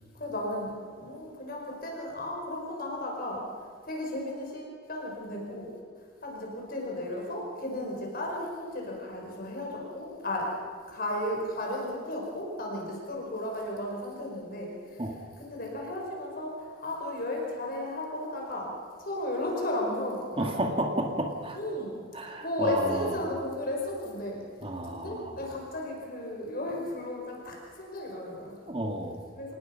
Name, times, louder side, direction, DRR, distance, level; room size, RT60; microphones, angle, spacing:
voice 1, 0.1-3.5 3.8-5.7 6.2-10.6 10.9-15.0 15.4-18.7 19.0-20.5 21.5-22.0 22.4-24.4 24.8-28.6 29.3-29.5, left 1 dB, 50° left, -1 dB, 5.0 m, -34 dB
voice 2, 20.4-21.6 22.1-23.2 24.6-25.4 28.7-29.2, right 1 dB, 30° right, 3 dB, 2.0 m, -31 dB
27.5 x 19.0 x 5.8 m, 2.1 s
head